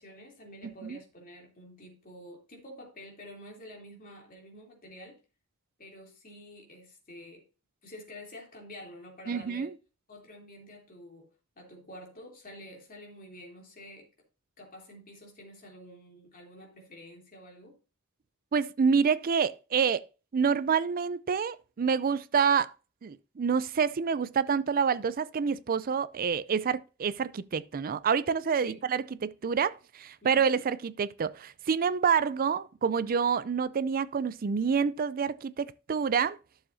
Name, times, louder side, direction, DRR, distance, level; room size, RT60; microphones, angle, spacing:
voice 1, 0.0-5.2 5.8-7.4 7.8-9.7 10.1-11.3 11.6-14.1 14.6-17.7 28.6-28.8 30.2-30.5, equal, 40° left, 3.1 m, -49 dB
voice 2, 0.6-1.0 9.3-9.7 18.5-20.0 20.3-22.7 23.0-36.4, right 6 dB, 40° right, 0.4 m, -27 dB
12.0 x 6.9 x 2.7 m
head